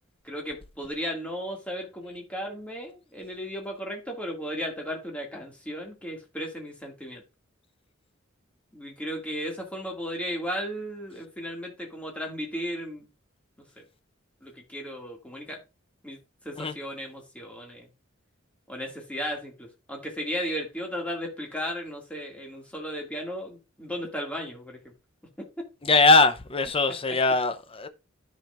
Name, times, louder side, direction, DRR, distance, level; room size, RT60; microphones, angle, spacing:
voice 1, 0.2-7.2 8.7-13.1 13.8-13.9 14.4-15.6 16.0-16.2 16.4-17.9 18.7-24.8 25.6-25.7 27.1-27.2, equal, 5° left, 2.2 m, -35 dB
voice 2, 25.8-27.9, left 3 dB, 30° left, 0.7 m, -21 dB
13.0 x 5.0 x 2.5 m
head